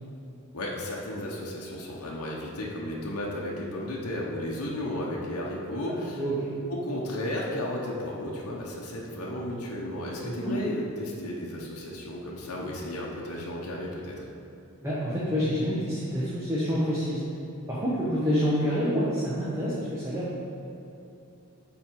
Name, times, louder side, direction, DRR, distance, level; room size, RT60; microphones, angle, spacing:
voice 1, 0.5-6.2 6.7-14.3, left 1 dB, 80° left, -3 dB, 0.9 m, -34 dB
voice 2, 6.2-6.5 10.2-10.5 14.8-17.2 17.7-20.4, equal, 10° right, -9 dB, 1.0 m, -27 dB
8.2 x 3.8 x 4.6 m, 2.8 s
head